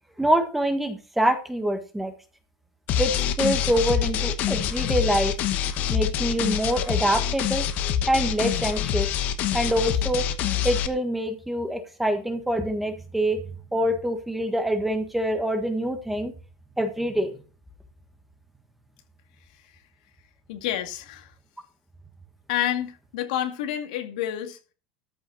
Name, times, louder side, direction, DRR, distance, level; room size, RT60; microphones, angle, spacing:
voice 1, 0.2-2.1 3.0-5.3 5.9-7.7 8.1-9.1 9.5-10.2 10.6-13.4 13.7-16.3 16.8-17.4, right 1 dB, 5° right, 1.5 m, -25 dB
sound 1, 2.9-10.9, left 9 dB, 45° left, 1.0 m, -26 dB
voice 2, 20.5-21.3 22.5-24.6, left 11 dB, 80° left, 2.2 m, -29 dB
13.5 x 5.7 x 6.3 m
supercardioid pair, 155°, 4 cm